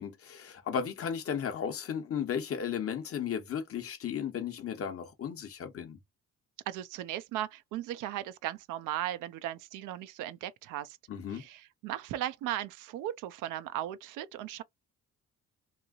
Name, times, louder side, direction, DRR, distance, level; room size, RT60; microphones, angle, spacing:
voice 1, 0.0-6.0 11.1-11.5, left 7 dB, 50° left, 0.9 m, -35 dB
voice 2, 6.7-11.0 11.3-14.6, right 12 dB, 90° right, 0.5 m, -37 dB
3.0 x 2.7 x 2.4 m
cardioid pair, 90°, 30 cm